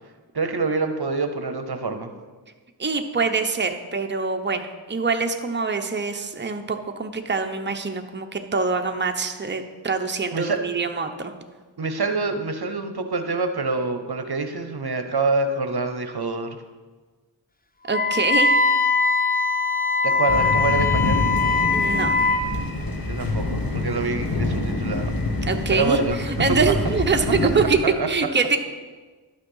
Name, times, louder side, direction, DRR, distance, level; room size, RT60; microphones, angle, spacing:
voice 1, 0.3-2.1 10.3-10.6 11.8-16.5 20.0-21.2 23.1-25.1 25.7-26.2 27.4-27.5 27.8-28.1, right 3 dB, 60° right, 7 dB, 0.9 m, -26 dB
voice 2, 2.8-11.3 17.9-18.6 21.7-22.2 25.5-26.0 26.4-27.8 28.1-28.6, right 4 dB, 25° right, 5 dB, 0.8 m, -24 dB
Wind instrument woodwind instrument, 17.9-22.5, left 4 dB, 20° left, 0.6 m, -21 dB
sound 1, 20.3-27.7, left 2 dB, 55° left, 1.4 m, -26 dB
11.5 x 6.5 x 5.5 m, 1.4 s
wide cardioid pair, 50°, 43 cm